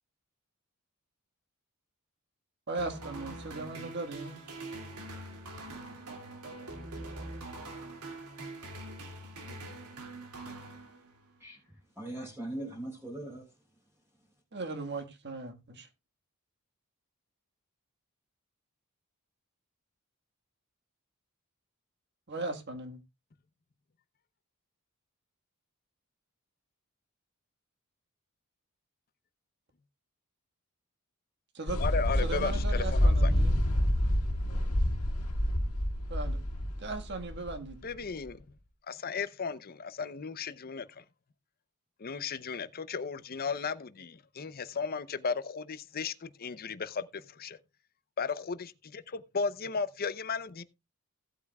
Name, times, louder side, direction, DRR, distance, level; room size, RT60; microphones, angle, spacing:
voice 1, 2.7-4.4 14.5-15.9 22.3-23.0 31.5-31.8 32.2-33.6 36.1-36.4 36.8-37.8, right 3 dB, 50° right, 1.5 m, -38 dB
sound 1, 2.8-11.4, right 2 dB, 90° right, 2.4 m, -43 dB
voice 2, 11.4-13.5, right 1 dB, 10° right, 3.8 m, -40 dB
sound 2, 31.7-38.3, equal, 75° left, 1.9 m, -28 dB
voice 3, 31.8-33.3 37.8-38.4 38.9-41.0 42.0-47.6 48.2-50.6, left 5 dB, 40° left, 0.6 m, -35 dB
17.0 x 8.3 x 2.3 m
head